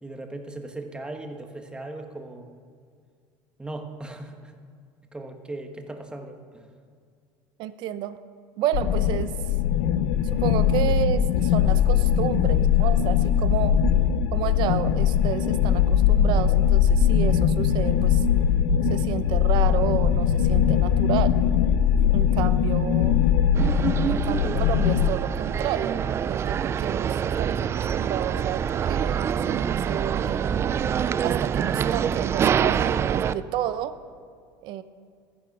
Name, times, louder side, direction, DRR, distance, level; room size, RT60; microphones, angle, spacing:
voice 1, 0.0-2.5 3.6-4.5 5.1-6.7, right 2 dB, 10° right, 5 dB, 1.3 m, -38 dB
voice 2, 7.6-8.2 8.6-9.3 10.3-13.8 14.3-18.2 18.9-21.4 22.1-23.2 24.1-30.6 31.2-34.0 34.6-34.8, right 11 dB, 60° right, 13 dB, 0.7 m, -31 dB
sound 1, 8.7-25.1, left 8 dB, 80° left, 0.7 m, -21 dB
sound 2, 23.5-33.3, right 8 dB, 30° right, 0.3 m, -26 dB
13.5 x 10.5 x 6.1 m, 2.2 s
supercardioid pair, 125°, 9 cm